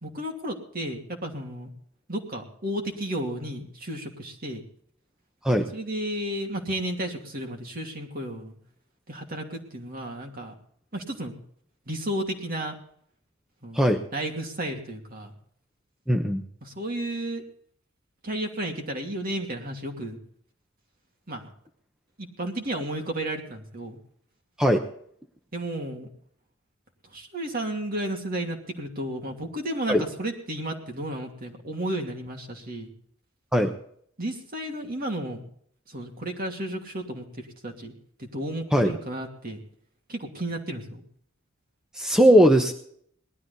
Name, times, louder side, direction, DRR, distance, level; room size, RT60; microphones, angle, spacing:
voice 1, 0.0-1.7 2.1-4.6 5.7-8.6 9.1-10.5 10.9-11.3 11.9-12.8 13.6-15.3 16.6-17.4 18.2-20.2 21.3-21.5 22.2-24.0 25.5-26.1 27.1-32.9 34.2-35.4 35.9-37.9 38.2-39.6 40.1-41.0, right 1 dB, 45° right, 3 dB, 2.7 m, -33 dB
voice 2, 16.1-16.4 24.6-24.8 29.9-30.0 33.5-33.7 38.7-38.9 41.9-42.7, equal, 5° right, 3 dB, 0.9 m, -19 dB
19.5 x 12.5 x 4.1 m, 0.63 s
head